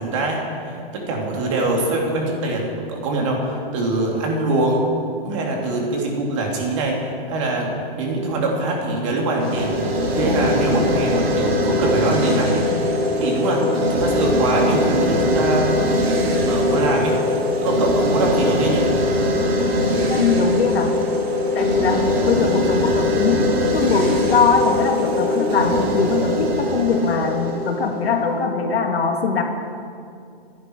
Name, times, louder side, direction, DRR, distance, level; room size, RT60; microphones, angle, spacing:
voice 1, 0.0-4.8 5.2-7.0 7.3-7.7 8.0-12.6 13.2-13.6 13.9-15.8 16.4-17.2 17.6-18.9, right 2 dB, 30° right, -1 dB, 2.8 m, -23 dB
sound 1, 9.4-28.5, left 1 dB, 80° right, 3.6 m, -21 dB
voice 2, 19.9-21.0 21.5-29.4, left 5 dB, 80° left, 3 dB, 2.4 m, -21 dB
26.5 x 11.0 x 4.7 m, 2.4 s
hypercardioid pair, 175°, 30 cm